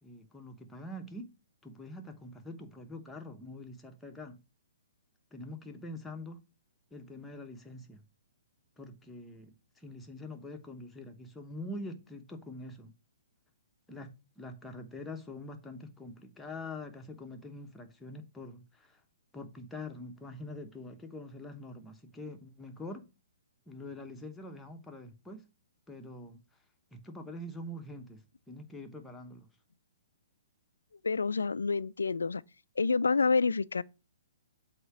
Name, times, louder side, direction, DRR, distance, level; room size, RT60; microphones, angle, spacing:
voice 1, 0.0-1.3 1.6-4.4 5.3-6.4 6.9-8.0 8.8-12.9 13.9-19.0 19.3-23.1 23.7-25.5 25.9-26.4 26.9-29.5, left 1 dB, 5° left, 1.0 m, -45 dB
voice 2, 31.0-32.4 32.8-33.8, left 4 dB, 80° left, 0.3 m, -28 dB
7.8 x 2.9 x 6.0 m
figure-of-eight pair, 125°, 0 cm